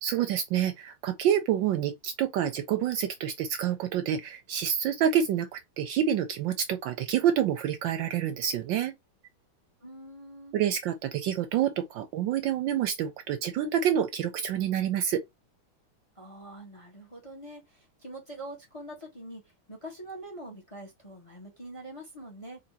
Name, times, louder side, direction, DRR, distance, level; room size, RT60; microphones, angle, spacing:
voice 1, 0.0-8.9 10.5-15.2, right 9 dB, 75° right, 1.2 m, -28 dB
voice 2, 9.8-10.5 16.1-22.6, right 1 dB, 20° left, 1.0 m, -44 dB
4.1 x 2.8 x 4.0 m
omnidirectional pair, 2.3 m